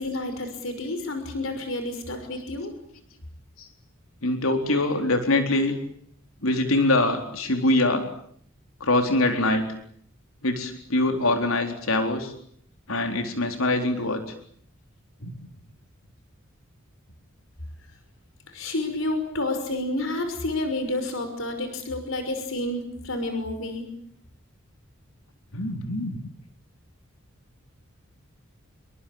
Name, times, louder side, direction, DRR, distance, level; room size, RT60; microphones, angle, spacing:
voice 1, 0.0-2.7 18.5-23.9, left 2 dB, 70° left, 8 dB, 5.9 m, -30 dB
voice 2, 4.2-5.8 6.4-8.0 8.8-9.7 10.4-12.3 12.9-14.2 15.2-15.3 25.5-26.2, left 2 dB, 90° left, 5 dB, 4.1 m, -23 dB
28.0 x 23.5 x 8.8 m, 0.64 s
head